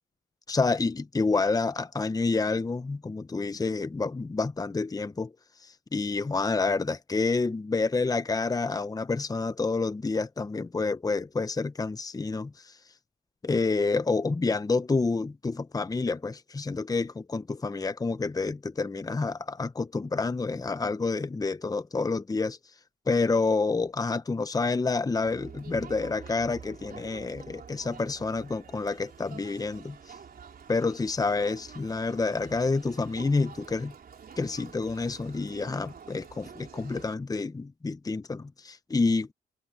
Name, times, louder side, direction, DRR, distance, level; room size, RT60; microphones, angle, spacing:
voice 1, 0.5-5.3 5.6-12.7 13.4-22.6 23.1-30.0 30.7-33.9 34.4-39.3, left 3 dB, 20° left, 1.0 m, -28 dB
Crowd, 25.2-37.1, right 7 dB, 50° right, 3.6 m, -48 dB
cardioid pair, 90°, 20 cm